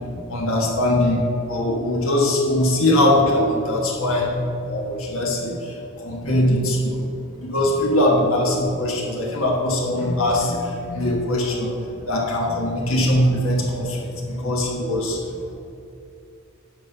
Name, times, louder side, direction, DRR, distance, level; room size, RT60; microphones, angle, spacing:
voice 1, 0.3-4.4 4.7-5.5 6.0-7.0 7.4-11.7 12.1-14.0 14.4-15.2, left 1 dB, 70° left, -2 dB, 1.5 m, -21 dB
8.3 x 5.4 x 5.5 m, 2.7 s
head